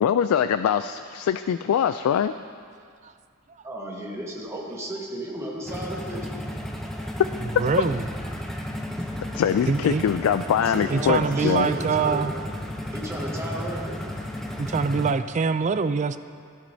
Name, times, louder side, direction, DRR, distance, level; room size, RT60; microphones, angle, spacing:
voice 1, 0.0-2.3 9.3-11.7, left 8 dB, 85° left, 11 dB, 0.3 m, -23 dB
voice 2, 3.6-6.4 10.7-12.2 12.9-14.0, right 1 dB, 15° right, -3 dB, 1.4 m, -34 dB
sound 1, 5.7-15.1, equal, ahead, 0.7 m, -33 dB
voice 3, 7.6-8.0 9.7-10.0 10.9-12.3 14.6-16.2, right 5 dB, 35° right, 12 dB, 0.3 m, -24 dB
16.0 x 11.5 x 2.7 m, 2.2 s
head